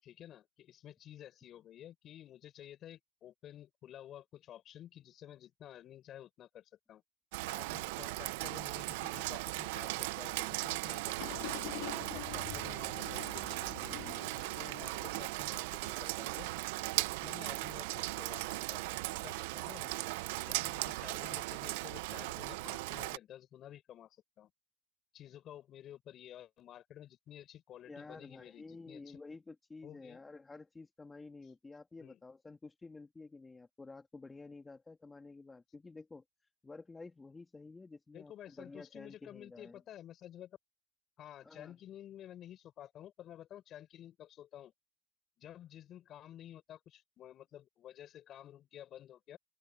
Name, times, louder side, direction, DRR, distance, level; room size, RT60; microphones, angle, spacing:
voice 1, 0.0-7.0 7.5-16.5 16.9-18.9 19.2-19.9 20.4-24.5 25.1-29.2 29.8-30.2 32.0-32.2 38.1-40.6 41.2-44.7 45.4-49.4, left 11 dB, 50° left, 7.0 m, -52 dB
Rain, 7.3-23.2, right 21 dB, 85° right, 0.6 m, -38 dB
sound 1, 11.2-15.2, left 25 dB, 80° left, 3.7 m, -46 dB
voice 2, 27.9-36.2 36.6-39.8 41.4-41.8, left 3 dB, 15° left, 3.1 m, -51 dB
open air
supercardioid pair, 105°, 0 cm